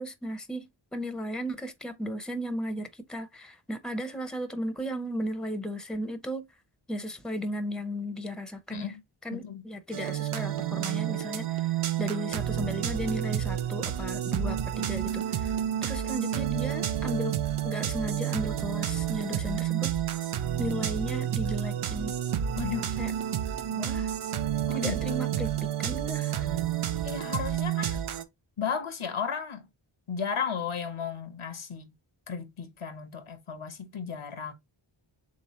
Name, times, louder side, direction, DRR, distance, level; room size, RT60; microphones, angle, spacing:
voice 1, 0.0-6.5 6.9-8.9 9.2-15.6 15.8-17.3 17.6-19.9 20.6-22.1 23.0-23.1 23.7-24.1 24.7-25.5 25.8-26.5, equal, ahead, 0.7 m, -35 dB
voice 2, 8.7-9.0 9.3-9.7 22.6-22.9 24.7-25.2 27.0-28.0 28.6-29.6 30.1-31.9 32.3-34.5, left 6 dB, 90° left, 1.0 m, -34 dB
sound 1, 9.9-28.2, right 10 dB, 90° right, 0.6 m, -30 dB
3.4 x 3.1 x 4.2 m
wide cardioid pair, 80°, 49 cm